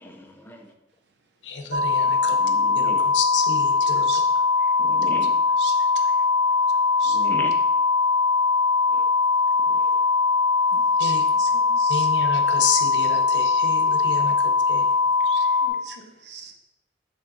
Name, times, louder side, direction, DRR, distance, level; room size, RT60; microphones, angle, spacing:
voice 1, 0.0-0.7 2.4-3.0 4.8-5.3 7.1-7.5, left 1 dB, 10° left, 3 dB, 0.5 m, -37 dB
voice 2, 1.4-2.4 2.8-4.1 11.0-11.2 11.9-14.3 14.7-14.8, left 5 dB, 85° left, 6 dB, 0.7 m, -29 dB
sound 1, 1.7-15.7, left 4 dB, 40° right, 0.5 m, -21 dB
voice 3, 3.9-4.2 5.6-6.1 7.0-7.2 10.7-12.1 15.2-16.5, right 6 dB, 70° right, 4 dB, 0.8 m, -40 dB
7.1 x 3.4 x 3.9 m, 0.94 s
head